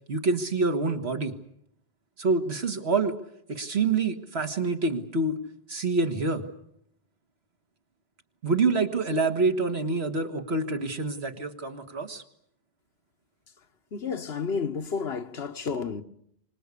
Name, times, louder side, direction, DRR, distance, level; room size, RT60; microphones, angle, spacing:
voice 1, 0.1-1.3 2.2-3.1 3.5-5.4 5.7-6.4 8.4-12.2, right 3 dB, 85° right, 2.0 m, -26 dB
voice 2, 13.9-16.0, left 5 dB, 80° left, 1.4 m, -31 dB
25.5 x 19.5 x 8.4 m
omnidirectional pair, 1.1 m